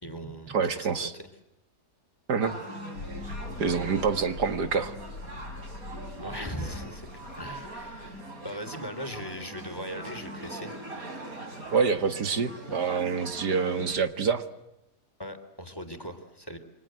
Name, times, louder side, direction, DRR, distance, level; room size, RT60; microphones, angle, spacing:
voice 1, 0.0-1.1 6.2-7.1 7.4-10.8 15.2-16.6, equal, 15° left, 7 dB, 3.5 m, -39 dB
voice 2, 0.5-1.1 2.3-2.6 3.3-4.9 11.7-14.4, right 5 dB, 75° right, 9 dB, 2.3 m, -27 dB
sound 1, 2.4-14.0, right 1 dB, 55° right, 4.4 m, -41 dB
sound 2, 2.9-8.2, left 3 dB, 80° left, 2.5 m, -43 dB
29.5 x 24.5 x 7.8 m, 0.89 s
omnidirectional pair, 1.8 m